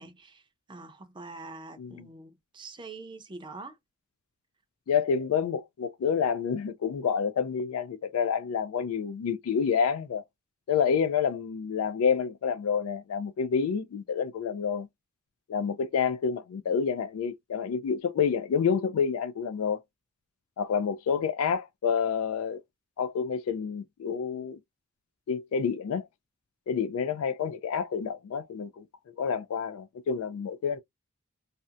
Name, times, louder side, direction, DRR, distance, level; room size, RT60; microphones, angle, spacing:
voice 1, 0.0-3.8, right 3 dB, 25° right, 0.5 m, -45 dB
voice 2, 4.9-10.2 10.7-14.9 15.5-19.8 20.6-22.6 23.0-24.6 25.3-26.1 26.7-28.8 29.2-30.8, left 6 dB, 80° left, 0.3 m, -28 dB
2.7 x 2.1 x 2.4 m
head